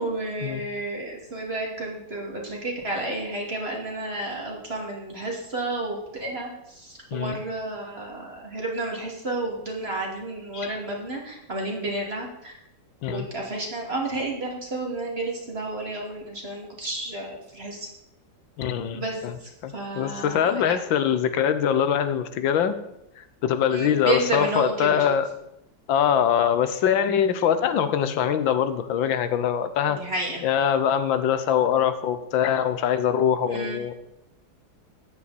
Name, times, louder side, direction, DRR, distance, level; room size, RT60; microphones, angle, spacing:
voice 1, 0.0-12.6 13.1-17.9 18.9-20.8 23.7-25.0 29.8-30.4 33.5-33.8, right 2 dB, 30° right, -1 dB, 2.9 m, -31 dB
voice 2, 18.6-19.3 19.6-22.8 23.2-25.3 25.9-30.0 30.4-33.9, left 8 dB, 85° left, 11 dB, 1.7 m, -23 dB
14.0 x 9.9 x 4.3 m, 0.84 s
omnidirectional pair, 2.1 m